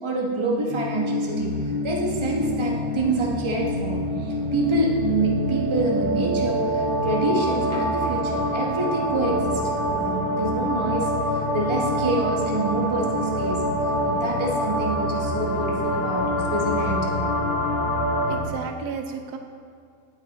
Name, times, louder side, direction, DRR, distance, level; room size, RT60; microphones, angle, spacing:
voice 1, 0.0-1.6 1.8-11.1 11.5-13.8 14.0-17.2, right 3 dB, 20° right, -1 dB, 1.0 m, -27 dB
sound 1, 0.7-18.4, left 1 dB, 75° left, 2.1 m, -26 dB
sound 2, 1.1-18.5, right 1 dB, 45° right, 1.4 m, -34 dB
voice 2, 18.2-19.4, right 6 dB, 75° right, 5 dB, 1.2 m, -33 dB
8.6 x 8.4 x 4.0 m, 2.3 s
omnidirectional pair, 1.7 m